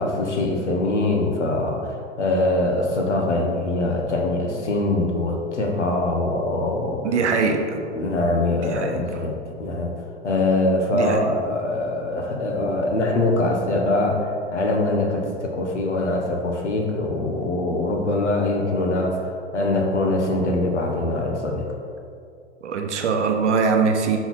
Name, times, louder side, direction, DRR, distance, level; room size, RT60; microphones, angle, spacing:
voice 1, 0.0-7.1 7.9-9.9 10.2-21.7, left 2 dB, 75° left, 2 dB, 1.1 m, -23 dB
voice 2, 7.0-7.8 8.7-9.0 10.9-11.2 22.6-24.2, right 5 dB, 75° right, 4 dB, 0.8 m, -22 dB
6.9 x 4.1 x 4.1 m, 2.4 s
figure-of-eight pair, 90°, 35 cm